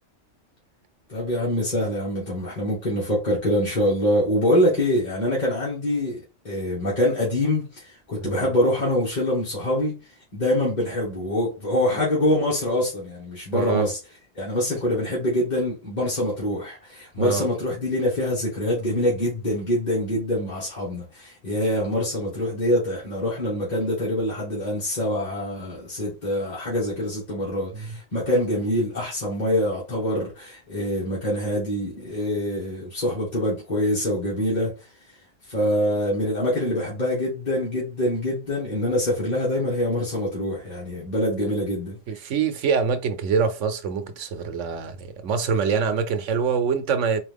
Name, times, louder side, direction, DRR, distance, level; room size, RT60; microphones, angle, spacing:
voice 1, 1.1-9.9 10.3-14.0 14.4-34.7 35.5-42.0, left 1 dB, 40° left, 1.8 m, -25 dB
voice 2, 8.2-8.5 13.5-13.9 17.2-17.5 27.7-27.9 41.4-41.5 42.1-47.2, right 6 dB, 85° right, 1.1 m, -25 dB
4.2 x 2.7 x 3.5 m
omnidirectional pair, 1.2 m